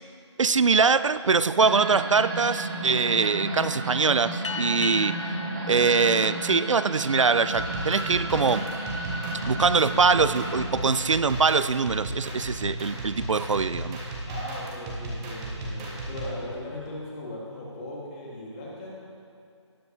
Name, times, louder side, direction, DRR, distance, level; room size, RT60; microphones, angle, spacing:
voice 1, 0.4-5.2 5.7-8.7 9.4-14.0, right 5 dB, 85° right, 14 dB, 0.4 m, -23 dB
sound 1, 1.6-10.6, right 2 dB, 40° right, 2.3 m, -33 dB
sound 2, 4.4-7.4, left 5 dB, 80° left, 0.5 m, -37 dB
sound 3, 7.5-16.3, right 1 dB, 10° right, 0.7 m, -35 dB
voice 2, 14.2-18.9, left 1 dB, 15° left, -5 dB, 1.6 m, -38 dB
19.0 x 7.8 x 2.8 m, 2.4 s
figure-of-eight pair, 160°, 16 cm